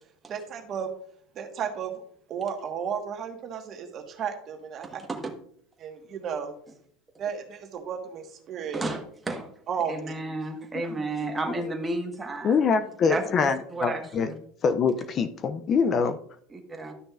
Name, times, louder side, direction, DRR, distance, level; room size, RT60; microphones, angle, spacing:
voice 1, 0.3-0.9 1.3-2.0 2.3-5.0 5.8-6.6 7.2-8.8 9.7-10.1, right 7 dB, 40° right, 1.5 m, -33 dB
voice 2, 4.8-5.3 8.7-9.0 9.2-9.5 9.9-12.6 13.1-14.3 16.5-16.9, right 2 dB, 15° right, 1.4 m, -32 dB
voice 3, 12.4-14.3 14.6-16.2, left 5 dB, 35° left, 0.5 m, -24 dB
12.0 x 6.1 x 2.5 m
supercardioid pair, 130°, 0 cm